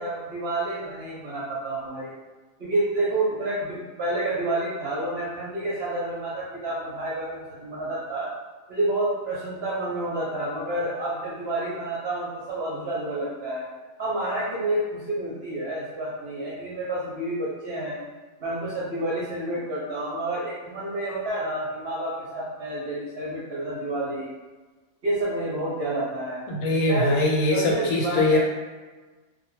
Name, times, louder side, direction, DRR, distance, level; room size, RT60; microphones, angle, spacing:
voice 1, 0.0-2.1 2.6-8.3 8.7-13.6 14.0-18.0 18.4-24.3 25.0-26.4 26.9-27.2 27.5-28.4, right 1 dB, 60° right, -6 dB, 0.7 m, -29 dB
voice 2, 26.5-28.4, left 2 dB, 85° left, -1 dB, 1.1 m, -22 dB
2.3 x 2.1 x 3.0 m, 1.3 s
omnidirectional pair, 1.5 m